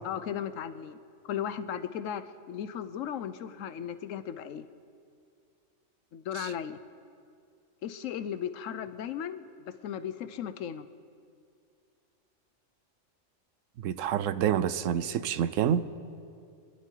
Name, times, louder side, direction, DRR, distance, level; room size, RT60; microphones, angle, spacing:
voice 1, 0.0-1.0 1.2-4.6 6.1-6.8 7.8-10.9, left 9 dB, 85° left, 1.1 m, -36 dB
voice 2, 13.8-16.0, right 9 dB, 80° right, 1.0 m, -28 dB
25.5 x 11.0 x 4.5 m
omnidirectional pair, 1.3 m